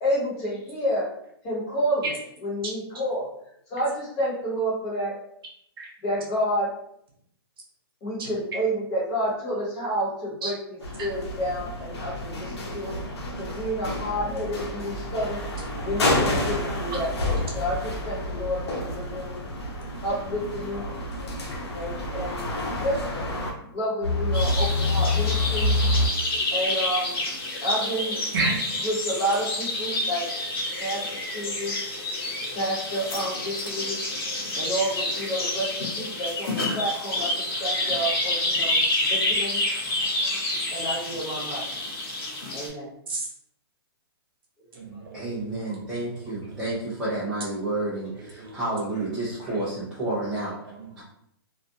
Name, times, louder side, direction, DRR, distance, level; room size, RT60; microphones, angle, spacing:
voice 1, 0.0-1.1 1.4-2.1 2.4-3.3 3.7-5.1 6.0-6.7 8.0-10.5 11.0-13.0 13.3-15.4 15.8-19.4 20.0-20.9 21.7-23.0 23.6-25.7 26.5-27.2 27.6-28.2 28.8-30.2 30.8-31.0 31.3-31.7 32.5-34.0 34.6-35.7 36.0-39.6 40.7-41.7 42.5-42.9 45.7-45.8 49.4-49.6, equal, 25° left, -6 dB, 1.0 m, -29 dB
voice 2, 8.2-8.6 10.4-10.5 16.9-17.0 28.3-28.7 36.6-36.8 43.1-43.3 44.7-46.6 48.1-49.1 49.5-49.9 50.6-51.0, right 3 dB, 60° right, 0 dB, 0.8 m, -34 dB
sound 1, 10.8-23.5 24.0-26.1, left 1 dB, 90° left, 0.8 m, -28 dB
sound 2, 24.3-42.7, left 2 dB, 65° left, 1.2 m, -28 dB
voice 3, 45.1-50.5, right 2 dB, 5° right, -11 dB, 0.4 m, -30 dB
2.4 x 2.2 x 2.6 m, 0.71 s
hypercardioid pair, 165°, 13 cm